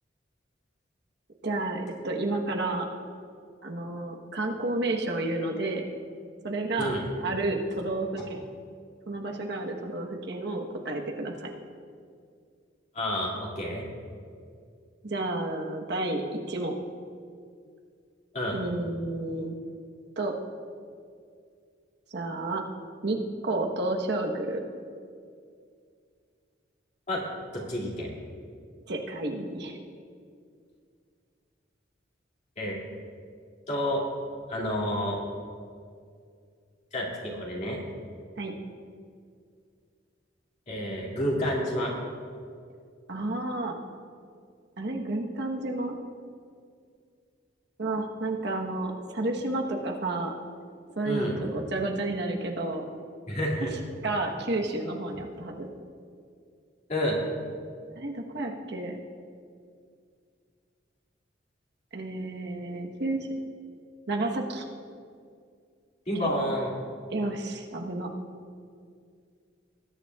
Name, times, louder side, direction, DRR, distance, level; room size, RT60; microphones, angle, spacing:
voice 1, 1.4-2.9 3.6-5.8 6.4-6.9 7.2-8.4 9.1-11.5 15.0-16.8 18.5-19.6 20.2-20.3 22.1-22.6 23.0-24.6 28.9-29.8 38.4-38.5 43.1-43.7 44.8-45.9 47.8-50.3 51.0-52.9 53.6-53.7 54.0-55.7 57.9-59.0 61.9-63.3 64.1-64.7 66.1-66.3 67.1-68.1, right 2 dB, 65° right, 2 dB, 1.1 m, -31 dB
voice 2, 12.9-13.8 18.3-18.6 27.1-27.2 27.5-28.1 32.6-32.8 33.7-34.0 34.5-35.2 36.9-37.8 40.7-41.9 51.0-51.4 53.3-53.7 56.9-57.2 66.1-66.7, equal, 40° left, -3 dB, 2.3 m, -29 dB
20.0 x 9.9 x 2.3 m, 2.2 s
head